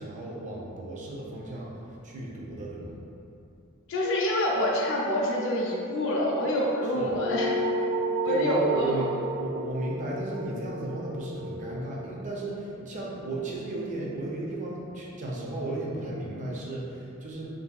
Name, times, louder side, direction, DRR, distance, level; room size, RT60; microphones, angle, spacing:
voice 1, 0.0-3.0 6.9-7.1 8.2-17.5, right 2 dB, 35° right, -4 dB, 0.4 m, -34 dB
voice 2, 3.9-7.6 8.2-9.0, left 1 dB, 60° left, -2 dB, 0.4 m, -26 dB
sound 1, 7.1-11.9, right 1 dB, 80° right, 0.8 m, -32 dB
2.6 x 2.4 x 2.2 m, 2.7 s
head